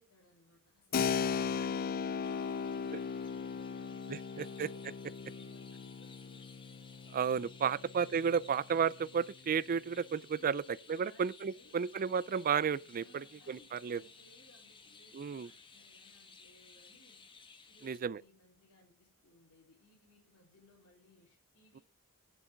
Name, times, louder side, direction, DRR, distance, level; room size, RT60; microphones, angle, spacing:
voice 1, 0.0-6.5 10.3-11.8 13.0-17.2 17.7-21.8, left 1 dB, 60° left, 4.1 m, -65 dB
Keyboard (musical), 0.9-9.3, left 6 dB, 40° left, 0.4 m, -38 dB
Chirp tweet, 2.2-18.0, left 4 dB, 20° left, 1.2 m, -58 dB
voice 2, 4.1-4.7 7.1-10.6 10.9-14.0 15.1-15.5 17.8-18.2, right 7 dB, 40° right, 0.4 m, -33 dB
11.0 x 6.8 x 4.6 m
head